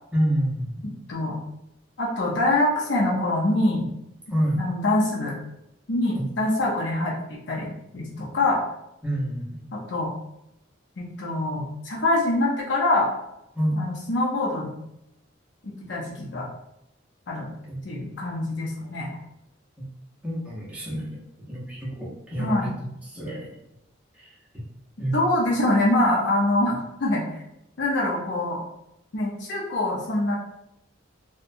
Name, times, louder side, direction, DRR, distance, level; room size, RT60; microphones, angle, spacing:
voice 1, 0.1-0.9 4.3-4.6 6.2-6.3 9.0-9.6 13.5-13.8 17.7-17.8 19.8-19.9 20.2-21.2 21.5-23.5 24.2-24.7 25.0-25.1, equal, 5° right, -6 dB, 0.7 m, -28 dB
voice 2, 0.8-1.4 2.0-3.9 4.5-5.4 5.9-7.1 7.5-8.6 9.7-10.1 11.0-13.1 13.8-14.7 15.6-16.5 17.3-17.5 17.8-19.1 22.4-22.7 25.1-27.2 27.8-28.6 29.1-30.4, left 1 dB, 60° left, -4 dB, 0.6 m, -24 dB
2.7 x 2.1 x 2.5 m, 0.85 s
head